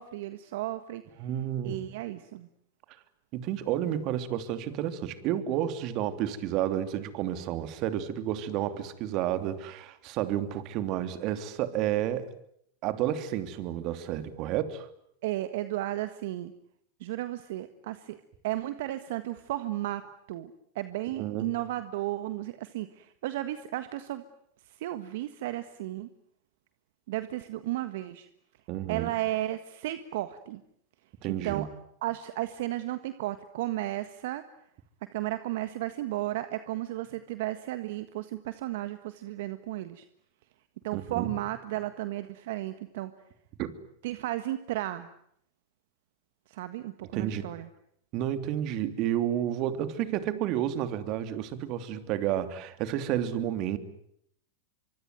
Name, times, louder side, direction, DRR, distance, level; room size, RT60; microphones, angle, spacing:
voice 1, 0.0-1.3 1.6-2.5 15.2-16.5 17.0-18.2 18.4-20.0 20.3-24.2 24.6-26.1 27.1-28.3 28.9-30.6 31.4-31.7 32.0-34.4 35.1-40.0 40.8-43.1 44.0-45.1 46.5-47.7, right 15 dB, 70° right, 11 dB, 1.5 m, -34 dB
voice 2, 1.2-1.8 3.3-12.3 12.8-14.9 21.2-21.5 28.7-29.1 31.2-31.7 40.9-41.3 43.6-43.7 47.1-47.4 48.1-53.8, right 11 dB, 50° right, 11 dB, 3.0 m, -31 dB
25.0 x 24.5 x 9.3 m, 0.71 s
hypercardioid pair, 105°, 0 cm